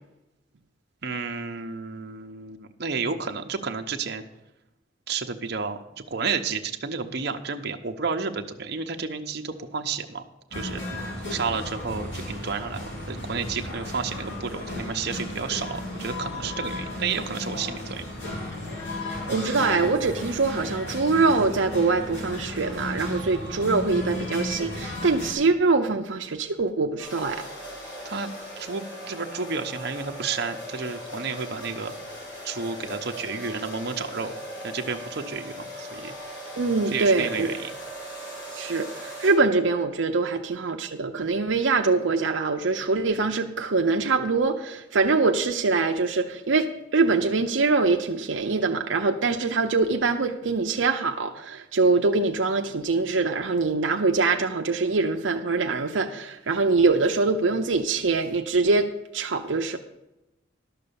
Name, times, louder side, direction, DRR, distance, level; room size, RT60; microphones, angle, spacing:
voice 1, 1.0-4.2 5.1-5.8 6.1-10.2 10.5-10.8 11.3-18.0 28.0-31.9 32.4-34.3 34.6-36.1 36.9-37.7, right 5 dB, 60° right, 5 dB, 0.9 m, -31 dB
sound 1, 10.5-25.3, left 1 dB, 65° left, 3.2 m, -34 dB
voice 2, 19.1-27.4 36.6-37.5 38.5-59.8, right 3 dB, 80° right, 4 dB, 0.7 m, -24 dB
sound 2, 27.0-39.3, equal, 85° left, 5.3 m, -39 dB
12.0 x 6.8 x 6.9 m, 0.95 s
head